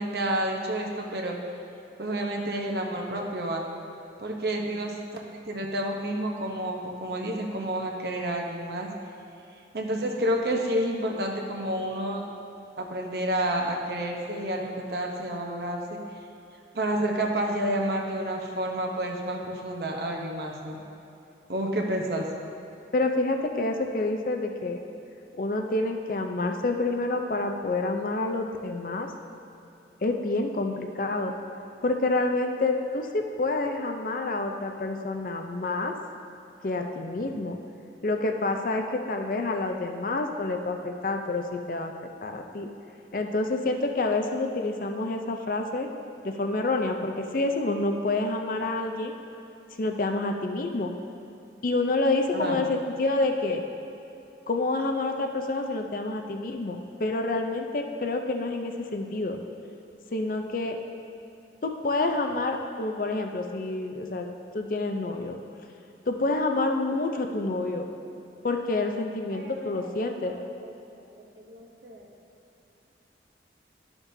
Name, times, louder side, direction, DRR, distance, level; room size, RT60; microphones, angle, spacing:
voice 1, 0.0-1.3 2.0-3.6 4.2-8.9 9.7-12.2 12.8-16.0 16.7-20.8 21.5-22.3 52.3-52.6 67.9-68.0 69.3-70.7 71.0-72.1, right 1 dB, 60° right, 1 dB, 0.8 m, -30 dB
voice 2, 22.9-24.8 25.4-29.1 30.0-31.3 31.8-35.9 36.6-37.6 38.0-41.9 42.2-42.7 43.1-45.9 46.2-49.1 49.8-50.9 51.6-53.6 54.5-59.4 60.1-60.8 61.6-64.3 64.5-65.4 66.1-67.9 68.4-70.3, left 2 dB, 50° left, 4 dB, 0.5 m, -28 dB
11.5 x 5.9 x 2.7 m, 2.8 s
head